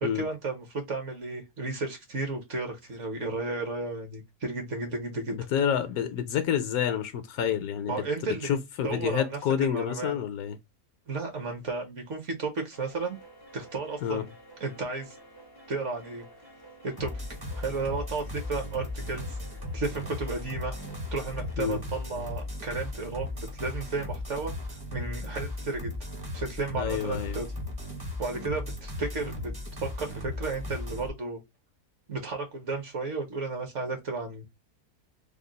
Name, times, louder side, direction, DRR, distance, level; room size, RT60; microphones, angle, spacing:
voice 1, 0.0-5.3 7.9-8.6 8.8-10.1 11.1-13.2 13.5-14.3 14.6-15.2 15.7-16.2 16.8-17.1 17.6-19.4 19.7-20.7 21.1-24.5 24.9-25.9 26.3-27.5 28.2-29.5 29.8-31.4 32.1-34.4, right 3 dB, 50° right, 1.2 m, -33 dB
voice 2, 5.3-8.0 8.2-10.6 14.0-14.2 21.6-21.8 26.8-27.4, left 9 dB, 70° left, 1.0 m, -28 dB
sound 1, 12.7-21.6, right 1 dB, 25° left, 0.5 m, -52 dB
sound 2, 17.0-31.1, left 1 dB, 20° right, 0.7 m, -36 dB
3.6 x 2.3 x 3.8 m
omnidirectional pair, 1.8 m